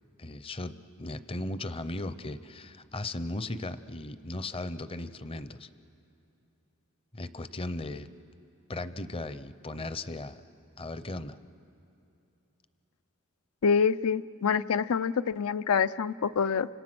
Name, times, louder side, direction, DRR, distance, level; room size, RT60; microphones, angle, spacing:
voice 1, 0.2-5.7 7.1-8.1 8.7-10.4 10.8-11.4, left 2 dB, 25° left, 13 dB, 0.6 m, -37 dB
voice 2, 13.6-16.7, left 6 dB, 85° left, 15 dB, 0.5 m, -26 dB
29.5 x 26.0 x 6.1 m, 2.8 s
head